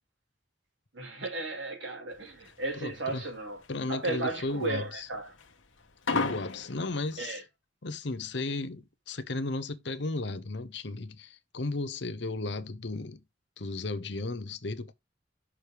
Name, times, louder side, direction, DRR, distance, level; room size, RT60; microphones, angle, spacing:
voice 1, 0.9-3.6 3.9-5.3 7.2-7.4, right 3 dB, 70° right, 2.9 m, -35 dB
sound 1, 2.1-7.2, left 4 dB, 80° left, 1.3 m, -34 dB
voice 2, 2.7-3.2 3.7-5.1 6.1-7.4 7.8-13.2 13.6-14.9, left 2 dB, 60° left, 0.8 m, -34 dB
6.3 x 4.7 x 5.0 m
head